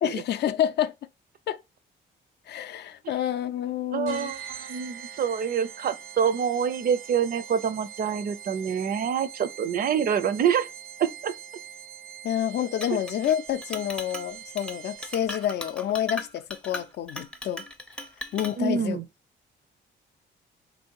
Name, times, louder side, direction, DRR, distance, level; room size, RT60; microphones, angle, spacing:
voice 1, 0.0-0.9 1.5-1.6 2.5-4.3 12.2-17.6 18.3-19.0, left 10 dB, 60° left, 0.4 m, -28 dB
voice 2, 3.9-10.7 11.0-11.3 18.6-19.0, right 7 dB, 50° right, 0.5 m, -26 dB
sound 1, 4.1-15.4, right 8 dB, 85° right, 0.7 m, -43 dB
Chink clink, 12.8-13.4 13.6-14.3 14.6-14.8 15.0-18.6, left 1 dB, 5° left, 0.5 m, -38 dB
3.1 x 2.7 x 4.4 m
cardioid pair, 90°, 20 cm